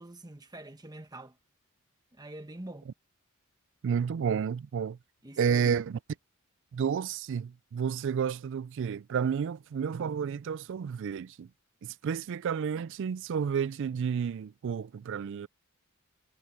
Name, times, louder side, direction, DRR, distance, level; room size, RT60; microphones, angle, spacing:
voice 1, 0.0-1.4 2.1-2.9 5.2-5.8, right 1 dB, 20° right, 1.3 m, -45 dB
voice 2, 3.8-5.0 5.4-6.0 6.7-11.5 11.8-15.5, right 7 dB, 60° right, 0.3 m, -31 dB
head